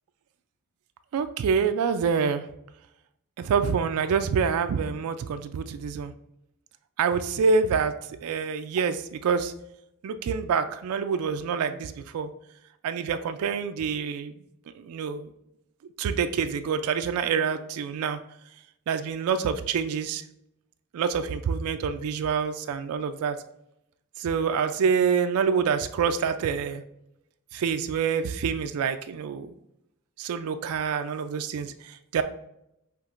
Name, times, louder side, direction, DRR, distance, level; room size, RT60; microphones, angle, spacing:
voice 1, 1.1-2.4 3.4-6.1 7.0-7.9 8.2-9.5 10.0-12.3 12.8-14.3 14.8-15.3 16.0-18.2 18.9-20.2 20.9-23.4 24.2-26.8 27.5-29.5 30.2-32.2, right 6 dB, 85° right, 9 dB, 0.3 m, -26 dB
5.8 x 3.0 x 2.4 m, 0.81 s
head